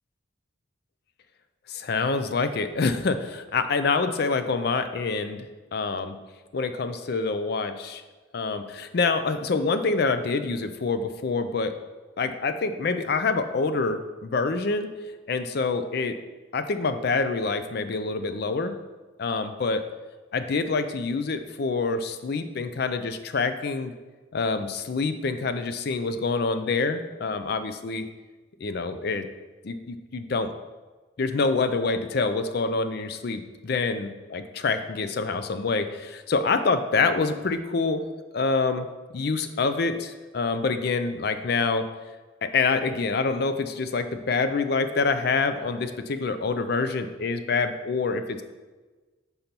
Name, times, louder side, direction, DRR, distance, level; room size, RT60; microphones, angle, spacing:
voice 1, 1.7-5.4 5.7-6.2 6.5-8.0 8.3-11.8 12.2-14.9 15.3-16.2 16.5-18.7 19.2-19.9 20.3-23.9 24.3-28.1 28.6-29.3 29.6-30.5 31.2-38.0 38.3-38.9 39.1-41.9 42.4-48.4, left 4 dB, 55° left, 10 dB, 0.4 m, -26 dB
5.4 x 4.4 x 5.2 m, 1.3 s
head